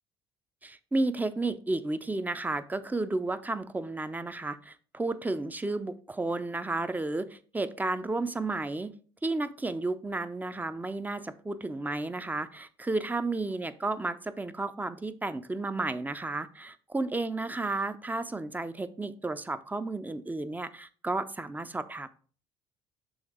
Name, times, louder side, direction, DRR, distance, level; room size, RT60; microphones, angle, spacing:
voice 1, 0.6-8.9 9.2-22.1, right 2 dB, 15° right, 12 dB, 0.6 m, -32 dB
6.4 x 3.5 x 4.8 m, 0.42 s
hypercardioid pair, 65°, 13 cm